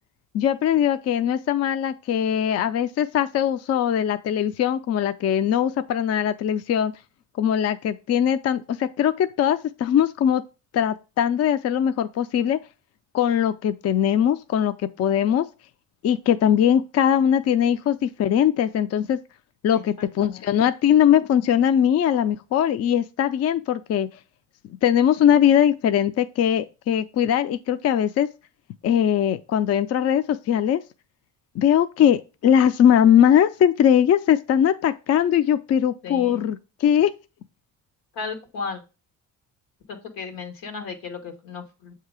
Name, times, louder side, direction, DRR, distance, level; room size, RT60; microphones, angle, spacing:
voice 1, 0.3-6.9 7.4-10.4 10.7-12.6 13.1-15.5 16.0-19.2 19.6-24.1 24.8-28.3 28.8-30.8 31.6-37.1, left 9 dB, 45° left, 0.4 m, -20 dB
voice 2, 19.7-20.5 36.0-36.5 38.1-38.8 39.9-41.9, left 5 dB, 90° left, 1.4 m, -35 dB
7.2 x 2.8 x 4.7 m
cardioid pair, 100°, 35 cm